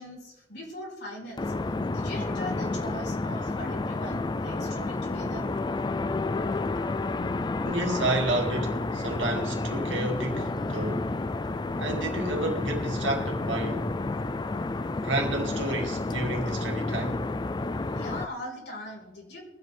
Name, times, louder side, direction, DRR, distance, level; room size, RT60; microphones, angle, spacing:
voice 1, 0.0-1.5 1.9-5.5 17.9-19.4, left 1 dB, 55° left, 4.4 m, -40 dB
sound 1, 1.4-18.3, left 3 dB, 20° left, 0.4 m, -30 dB
voice 2, 7.6-11.1 11.8-14.1 15.0-17.3, right 2 dB, 65° right, 2.4 m, -30 dB
23.0 x 8.0 x 3.4 m
head